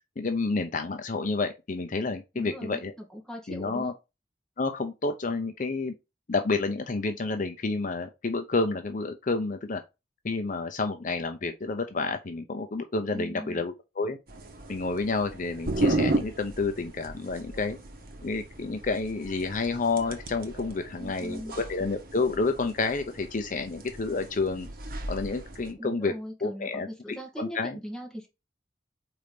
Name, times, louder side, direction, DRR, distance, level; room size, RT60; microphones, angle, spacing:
voice 1, 0.2-2.9 3.5-3.9 4.6-5.9 6.3-9.8 10.2-14.2 14.7-17.8 18.2-21.4 21.7-24.7 25.1-26.1 26.4-27.8, left 3 dB, 45° left, 0.6 m, -29 dB
voice 2, 2.3-3.9 13.1-13.7 21.0-21.6 25.8-28.3, equal, 5° left, 2.2 m, -39 dB
sound 1, 14.3-25.7, right 2 dB, 55° right, 1.3 m, -35 dB
4.9 x 3.9 x 5.1 m
head